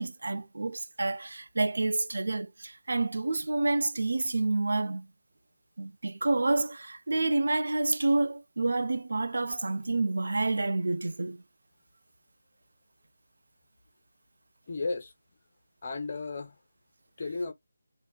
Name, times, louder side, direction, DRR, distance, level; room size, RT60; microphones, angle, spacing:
voice 1, 0.0-5.1 5.8-11.4, right 2 dB, 65° right, 0.4 m, -28 dB
voice 2, 14.7-15.1 15.8-16.6 17.2-17.5, left 3 dB, 40° left, 0.7 m, -34 dB
2.9 x 2.6 x 2.2 m
figure-of-eight pair, 160°, 0 cm